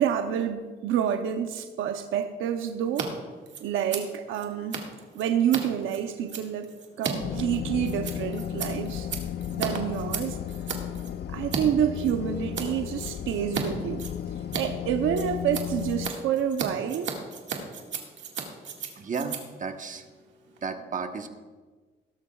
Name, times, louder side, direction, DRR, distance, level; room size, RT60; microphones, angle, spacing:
voice 1, 0.0-3.1 3.6-4.8 5.1-6.7 7.0-9.1 9.5-10.4 11.3-14.1 14.6-17.1, right 9 dB, 85° right, 7 dB, 0.8 m, -28 dB
Scissors, 2.8-3.1 3.3-11.6 11.9-12.7 13.0-13.6 13.9-20.7, right 7 dB, 65° right, 1.9 m, -36 dB
sound 1, 7.2-16.1, left 10 dB, 55° left, 0.6 m, -34 dB
voice 2, 17.7-18.1 19.0-20.0 20.6-21.3, right 5 dB, 40° right, 6 dB, 1.2 m, -34 dB
17.5 x 13.0 x 2.4 m, 1.4 s
cardioid pair, 90°, 20 cm